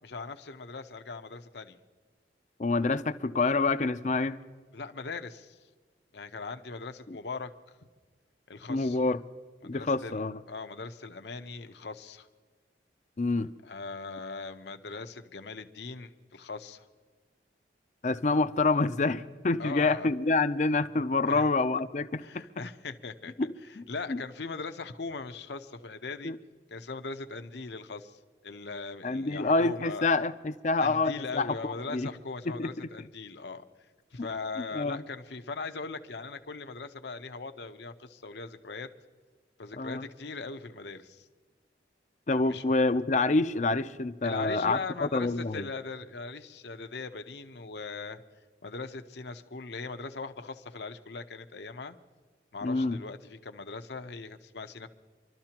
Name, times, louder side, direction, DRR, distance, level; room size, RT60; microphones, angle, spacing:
voice 1, 0.0-1.8 4.7-5.6 6.1-7.8 8.5-9.0 9.6-12.3 13.6-16.9 19.6-20.1 21.2-21.5 22.2-23.3 23.9-26.3 26.7-30.1 30.8-33.6 34.1-38.9 39.6-41.3 42.5-42.6 44.2-48.2 48.6-52.0 52.5-54.9, left 4 dB, 75° left, 7 dB, 0.8 m, -40 dB
voice 2, 2.6-4.4 7.1-7.2 8.7-9.2 9.6-10.4 13.2-13.5 18.0-22.4 23.4-23.8 24.1-24.2 26.2-26.4 29.0-32.1 32.5-32.7 34.7-35.0 39.8-40.0 42.3-45.7 52.6-53.0, left 3 dB, 40° left, 12 dB, 0.5 m, -27 dB
26.5 x 13.0 x 2.9 m, 1.5 s
head